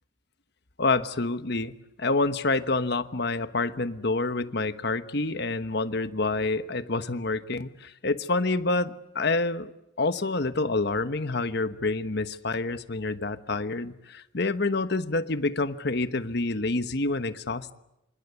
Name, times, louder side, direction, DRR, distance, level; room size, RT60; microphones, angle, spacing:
voice 1, 0.8-9.7 10.0-17.7, left 3 dB, 55° left, 11 dB, 1.2 m, -27 dB
28.0 x 25.5 x 8.2 m, 0.88 s
head